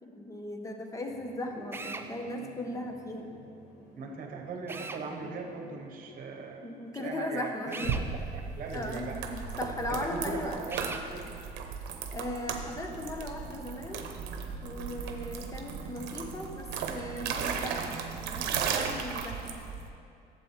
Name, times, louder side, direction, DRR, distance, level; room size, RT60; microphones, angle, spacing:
voice 1, 0.0-3.3 6.6-8.0 8.7-10.6 12.1-14.1 14.6-19.6, left 1 dB, 20° left, 3 dB, 1.0 m, -38 dB
sound 1, 1.1-7.1, equal, 70° left, 1.3 m, -52 dB
Drill, 1.7-2.1 4.7-5.0 7.7-8.1 10.7-11.1, right 3 dB, 15° right, 0.4 m, -39 dB
voice 2, 4.0-6.7 6.9-7.9 8.3-9.2 9.9-11.3, right 4 dB, 55° right, 2 dB, 1.2 m, -39 dB
sound 2, 7.8-19.9, right 6 dB, 85° right, 0.8 m, -36 dB
11.0 x 7.8 x 3.3 m, 2.5 s
cardioid pair, 110°, 17 cm